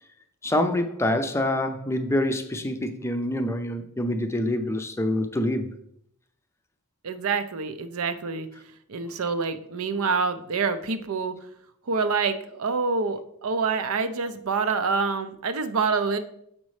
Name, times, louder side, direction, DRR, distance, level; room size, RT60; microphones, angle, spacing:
voice 1, 0.4-5.7, left 1 dB, 10° left, 7 dB, 0.5 m, -26 dB
voice 2, 7.0-8.5 8.9-11.3 11.9-16.2, right 4 dB, 70° right, 10 dB, 0.6 m, -26 dB
7.3 x 5.2 x 3.2 m, 0.71 s
head